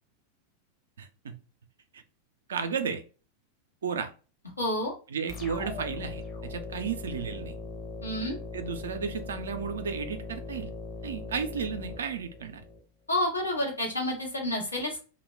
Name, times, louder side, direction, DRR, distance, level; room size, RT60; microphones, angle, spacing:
voice 1, 1.0-1.4 1.9-2.0 2.5-3.0 3.8-4.1 5.1-7.6 8.5-10.7 11.0-12.6, right 6 dB, 65° right, 8 dB, 0.4 m, -33 dB
voice 2, 4.6-4.9 8.0-8.4 13.1-15.0, left 1 dB, 80° left, -1 dB, 0.9 m, -29 dB
sound 1, 5.3-12.8, left 3 dB, 25° left, 0.7 m, -40 dB
2.1 x 2.1 x 3.2 m, 0.36 s
figure-of-eight pair, 90°, 0 cm